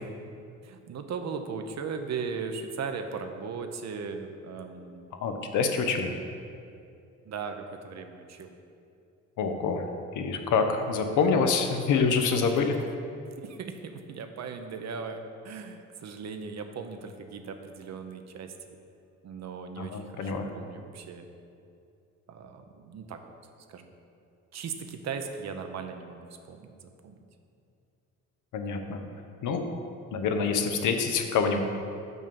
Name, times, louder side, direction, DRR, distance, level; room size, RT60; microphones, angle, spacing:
voice 1, 0.6-5.1 7.2-8.6 13.4-18.8 19.2-21.3 22.3-23.3 23.7-23.9 24.5-27.2, right 5 dB, 60° right, 6 dB, 0.8 m, -38 dB
voice 2, 5.2-6.1 9.4-9.9 10.1-12.7 19.8-20.5 28.5-29.0 29.4-29.6 30.1-31.6, left 5 dB, 80° left, 5 dB, 0.9 m, -26 dB
6.2 x 5.3 x 6.9 m, 2.5 s
cardioid pair, 90°, 30 cm